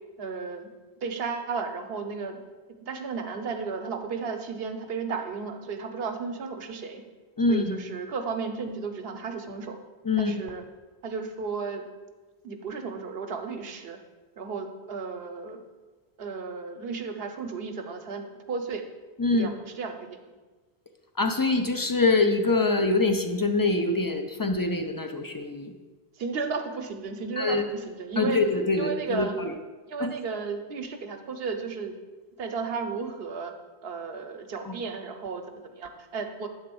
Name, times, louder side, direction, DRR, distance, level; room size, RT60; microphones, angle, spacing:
voice 1, 0.2-0.7 1.0-2.4 2.8-7.0 7.5-9.8 10.2-10.6 11.0-11.9 12.4-14.0 14.4-15.6 16.2-18.9 19.4-20.2 26.2-28.4 28.8-29.4 29.9-31.9 32.4-33.5 33.8-36.5, right 5 dB, 75° right, 7 dB, 1.0 m, -34 dB
voice 2, 7.4-7.8 10.0-10.5 19.2-19.5 21.2-25.7 27.4-27.6 28.2-29.5 30.0-30.1 34.6-34.8, left 3 dB, 30° left, 5 dB, 0.4 m, -24 dB
8.7 x 3.9 x 6.8 m, 1.3 s
omnidirectional pair, 1.0 m